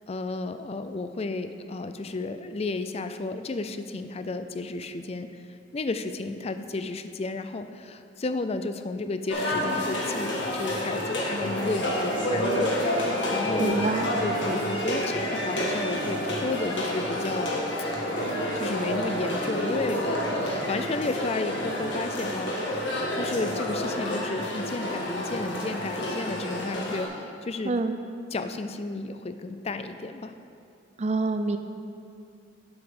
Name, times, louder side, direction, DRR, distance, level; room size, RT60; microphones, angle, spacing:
voice 1, 0.1-5.3 5.7-13.9 14.2-17.5 18.5-22.5 23.1-27.7 28.3-30.3, left 3 dB, 35° left, 9 dB, 0.4 m, -32 dB
sound 1, 9.3-27.1, equal, 75° left, 1.6 m, -29 dB
voice 2, 13.6-14.1 27.7-27.9 31.0-31.6, right 3 dB, 35° right, 8 dB, 0.5 m, -26 dB
7.8 x 6.9 x 5.4 m, 2.5 s
head